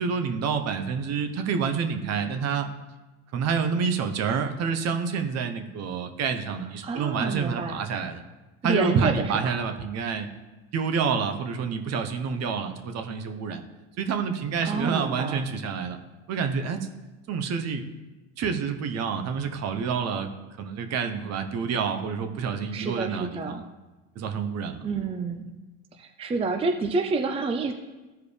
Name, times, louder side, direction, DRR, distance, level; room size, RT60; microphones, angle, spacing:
voice 1, 0.0-2.7 3.3-8.2 8.6-10.3 10.7-13.6 14.0-16.0 16.3-16.9 17.3-17.8 18.4-20.3 20.6-23.6 24.2-24.8, right 6 dB, 50° right, 7 dB, 0.9 m, -28 dB
voice 2, 6.8-7.8 8.6-9.5 14.6-15.4 22.7-23.6 24.8-25.4 25.9-27.7, right 4 dB, 15° right, 6 dB, 0.5 m, -28 dB
14.0 x 4.8 x 3.3 m, 1.1 s
supercardioid pair, 105°, 34 cm